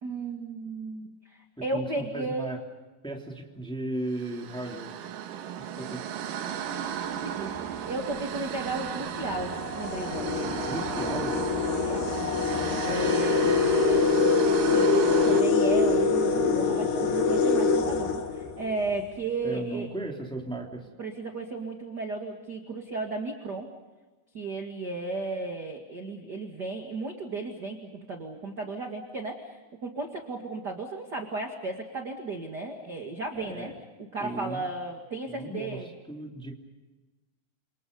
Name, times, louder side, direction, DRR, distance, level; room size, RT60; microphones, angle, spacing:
voice 1, 0.0-2.5 7.2-10.6 11.6-12.2 12.8-14.0 14.7-19.9 21.0-23.7 24.3-33.7 34.0-35.9, right 3 dB, 35° right, 3 dB, 1.9 m, -34 dB
voice 2, 2.1-2.6 3.0-4.9 5.6-6.1 10.7-11.3 19.4-20.9 33.3-33.8 34.2-34.6 35.3-36.6, right 1 dB, ahead, 1 dB, 2.4 m, -36 dB
sound 1, 4.1-15.4, right 9 dB, 65° right, 2.7 m, -35 dB
sound 2, 7.6-7.8 8.7-8.8 9.2-19.0, left 4 dB, 75° left, 4.1 m, -25 dB
28.5 x 27.5 x 5.5 m, 1.2 s
omnidirectional pair, 4.6 m